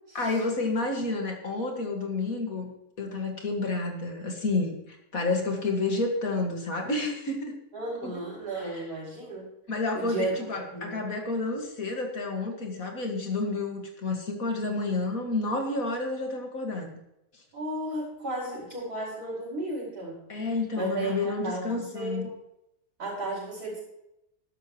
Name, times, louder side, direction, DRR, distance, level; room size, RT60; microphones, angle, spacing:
voice 1, 0.1-2.7 3.0-7.6 8.0-8.1 8.6-8.8 9.7-17.0 20.3-22.3, left 3 dB, 65° left, 2 dB, 2.4 m, -30 dB
voice 2, 7.7-9.5 9.9-10.3 10.7-11.0 17.5-20.2 20.7-22.2 23.0-23.8, right 2 dB, 75° right, -5 dB, 5.9 m, -34 dB
13.0 x 11.5 x 3.1 m, 0.84 s
omnidirectional pair, 1.6 m